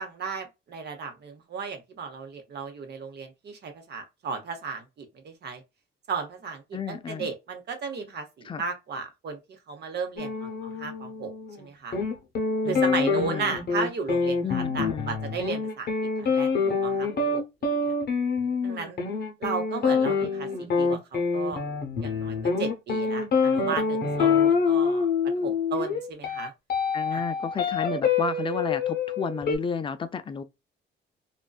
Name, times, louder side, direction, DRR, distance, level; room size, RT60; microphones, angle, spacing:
voice 1, 0.0-5.6 6.1-11.3 11.6-12.0 12.7-15.9 16.2-16.5 16.8-17.9 18.6-19.0 19.4-21.6 22.0-25.1 25.4-26.5 27.1-27.2, right 5 dB, 60° right, 0.8 m, -35 dB
voice 2, 6.7-7.3 8.4-8.6 12.6-13.6 14.4-15.2 26.9-30.4, left 6 dB, 25° left, 0.4 m, -32 dB
sound 1, 10.2-11.6 11.9-29.6, left 5 dB, 50° left, 0.7 m, -26 dB
2.6 x 2.2 x 2.3 m
cardioid pair, 90°, 20 cm